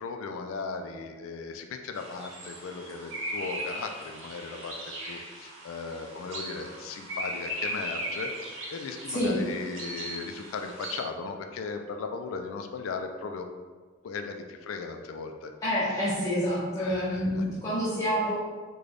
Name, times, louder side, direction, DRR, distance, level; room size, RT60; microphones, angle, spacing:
voice 1, 0.0-13.5 14.0-15.5 16.1-16.2 16.8-17.4, left 4 dB, 80° left, 6 dB, 0.3 m, -37 dB
sound 1, 1.9-11.0, right 1 dB, 75° right, 0.7 m, -38 dB
voice 2, 9.1-9.5 15.6-18.4, equal, 15° left, -10 dB, 0.5 m, -28 dB
3.3 x 2.2 x 3.8 m, 1.4 s
head